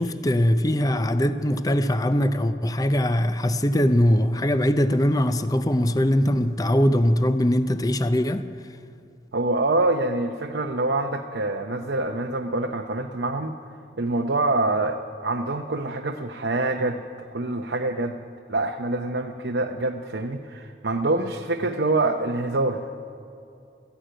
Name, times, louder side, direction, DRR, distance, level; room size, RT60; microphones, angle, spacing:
voice 1, 0.0-8.4, equal, 20° left, 0.5 m, -21 dB
voice 2, 9.3-13.5 14.0-17.0 17.3-18.2 18.5-23.0, right 2 dB, 80° right, 0.8 m, -25 dB
14.0 x 11.5 x 9.0 m
head